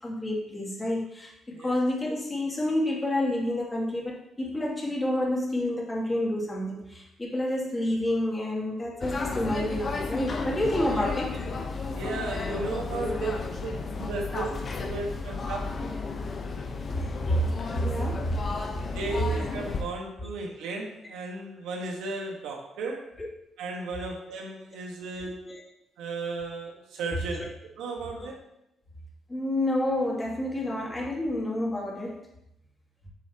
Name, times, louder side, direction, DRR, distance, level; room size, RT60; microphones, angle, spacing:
voice 1, 0.0-11.4 12.4-12.7 13.0-13.2 17.0-17.4 17.7-18.3 23.2-23.3 24.0-24.1 25.2-25.6 27.4-27.5 28.2-28.3 29.3-32.2, left 1 dB, 20° left, -3 dB, 2.6 m, -29 dB
sound 1, 9.0-19.8, left 4 dB, 45° left, 1.0 m, -33 dB
voice 2, 11.9-13.3 13.6-14.5 14.9-15.6 18.9-23.1 23.6-25.4 26.0-27.4 27.8-28.4, right 3 dB, 90° right, 1 dB, 1.5 m, -35 dB
8.4 x 7.0 x 2.9 m, 0.82 s
cardioid pair, 90°, 0 cm